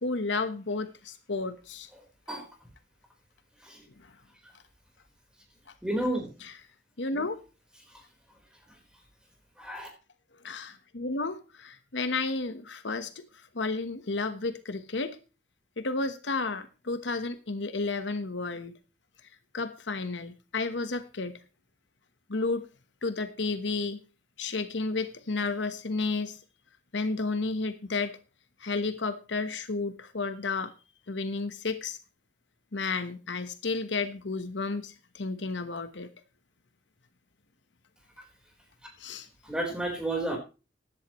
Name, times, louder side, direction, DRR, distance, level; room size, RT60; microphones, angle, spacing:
voice 1, 0.0-1.9 4.0-4.1 6.4-6.5 7.0-7.4 10.4-13.2 13.5-15.2 15.8-18.7 19.5-21.4 22.3-22.7 23.0-24.0 24.4-26.4 26.9-28.1 28.6-30.7 31.1-32.0 32.7-36.1 39.0-39.3, left 3 dB, 80° left, 10 dB, 1.2 m, -32 dB
voice 2, 5.8-6.3 9.6-9.9 39.4-40.4, right 1 dB, 5° right, 2 dB, 4.2 m, -30 dB
15.5 x 11.0 x 3.1 m, 0.31 s
head